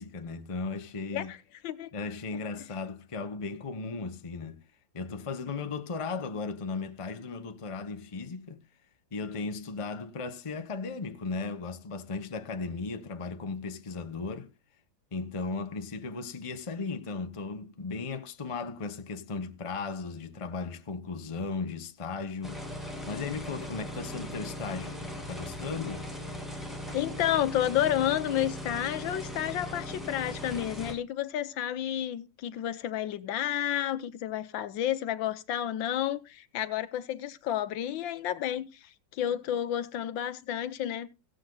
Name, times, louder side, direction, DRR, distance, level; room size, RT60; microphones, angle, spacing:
voice 1, 0.0-1.3 1.9-4.6 4.9-8.6 9.1-14.5 15.1-22.6 23.0-25.0 25.3-26.1, left 4 dB, 25° left, 0.7 m, -36 dB
sound 1, 22.4-30.9, left 1 dB, ahead, 2.6 m, -39 dB
voice 2, 26.9-41.1, left 11 dB, 75° left, 1.5 m, -31 dB
16.0 x 7.8 x 3.9 m
omnidirectional pair, 2.1 m